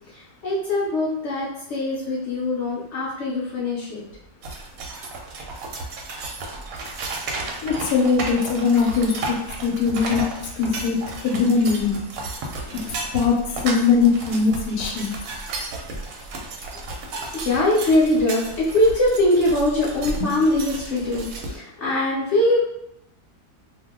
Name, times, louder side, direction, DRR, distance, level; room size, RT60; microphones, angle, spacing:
voice 1, 0.1-4.0 12.6-12.9 17.3-22.6, left 1 dB, 60° left, -6 dB, 0.8 m, -22 dB
sound 1, 4.4-21.6, right 2 dB, 70° right, 0.9 m, -33 dB
voice 2, 7.6-9.4 9.6-10.2 10.6-12.0 13.1-13.4 13.6-15.1, left 5 dB, 80° left, 1 dB, 1.1 m, -20 dB
2.6 x 2.1 x 3.5 m, 0.77 s
omnidirectional pair, 1.7 m